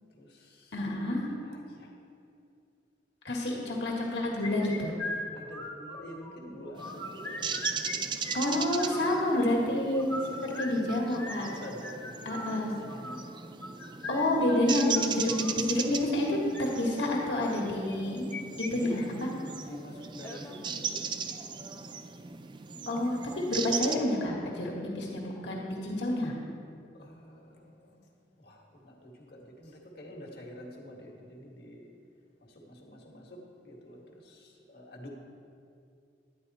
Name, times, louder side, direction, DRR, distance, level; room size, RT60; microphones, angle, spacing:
voice 1, 0.2-0.9 1.4-1.9 3.5-3.7 5.3-8.2 10.3-11.2 11.4-13.3 18.7-21.0 26.9-28.1 28.3-31.9 32.4-35.1, equal, 60° left, -1 dB, 1.7 m, -47 dB
voice 2, 0.7-1.3 3.2-4.9 8.3-11.5 12.2-12.7 14.1-18.3 18.7-19.3 22.9-26.3, left 1 dB, 75° left, -2 dB, 1.8 m, -29 dB
sound 1, 4.4-6.3 6.6-8.0 8.2-9.2 9.9-15.6 16.3-16.6 17.9-18.7 19.0-19.1 19.5-19.6 20.2-20.6, left 2 dB, 15° left, 0.8 m, -40 dB
sound 2, 6.8-24.0, right 6 dB, 25° right, 0.4 m, -38 dB
11.5 x 9.6 x 4.2 m, 2.5 s
head